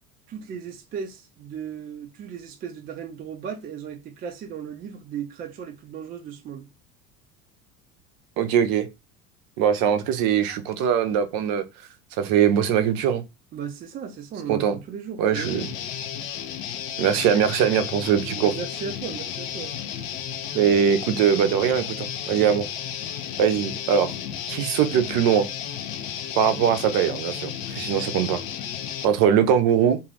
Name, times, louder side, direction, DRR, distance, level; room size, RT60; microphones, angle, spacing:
voice 1, 0.3-6.7 13.5-15.7 18.3-19.7, right 7 dB, 25° right, 0.3 m, -36 dB
voice 2, 8.4-8.9 9.6-11.6 12.2-13.2 14.5-14.8 15.2-15.6 17.0-18.5 20.5-22.7 23.4-24.1 24.5-25.5 26.4-28.4 29.0-30.0, right 8 dB, 50° right, 0.7 m, -21 dB
Guitar, 15.3-29.0, left 9 dB, 50° left, 0.7 m, -33 dB
2.6 x 2.4 x 3.2 m
hypercardioid pair, 70°, 46 cm